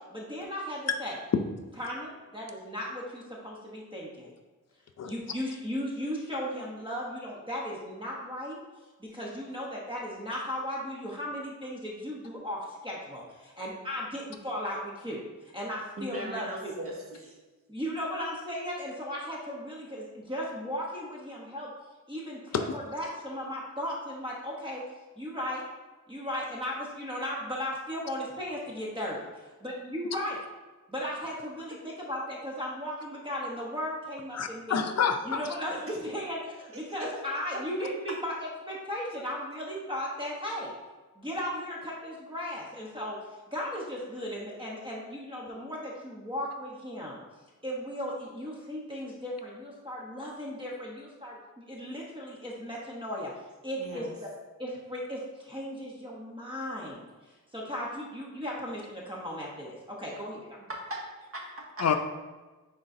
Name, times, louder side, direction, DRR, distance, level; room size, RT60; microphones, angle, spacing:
voice 1, 0.1-1.2 1.8-4.3 5.0-8.6 9.0-15.2 15.5-16.7 17.7-21.7 22.1-24.8 25.2-25.6 26.1-30.4 30.9-34.8 35.2-38.3 38.7-40.7 41.2-43.2 43.5-47.2 47.6-53.3 53.6-54.3 54.6-57.1 57.5-60.7, equal, 15° right, -4 dB, 1.0 m, -36 dB
voice 2, 16.0-17.3 36.7-37.1 53.8-54.1 60.9-61.4 61.8-61.9, right 1 dB, 45° right, -2 dB, 1.4 m, -39 dB
voice 3, 34.3-35.5 61.8-62.0, left 6 dB, 55° left, 7 dB, 0.5 m, -27 dB
9.6 x 3.9 x 2.7 m, 1.2 s
wide cardioid pair, 135°, 32 cm